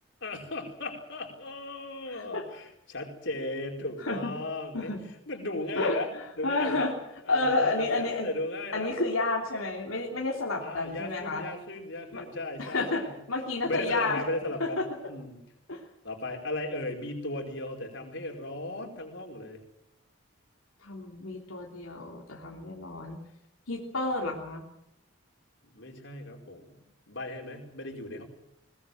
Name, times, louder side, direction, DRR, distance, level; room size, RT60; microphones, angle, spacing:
voice 1, 0.2-5.0 5.3-6.1 6.4-6.9 7.2-9.0 10.6-13.2 13.6-15.4 16.0-19.6 25.6-26.7 27.1-28.2, left 2 dB, 60° left, 3 dB, 4.7 m, -36 dB
voice 2, 2.1-2.4 4.0-4.3 4.7-5.0 5.8-6.0 6.4-6.9 7.3-8.3 8.7-11.4 12.1-12.2 12.6-13.0 13.3-14.2 14.6-14.8 15.7-15.8 20.8-23.2 23.7-24.6, left 2 dB, 90° left, -1 dB, 3.2 m, -30 dB
21.0 x 20.5 x 7.8 m, 0.82 s
head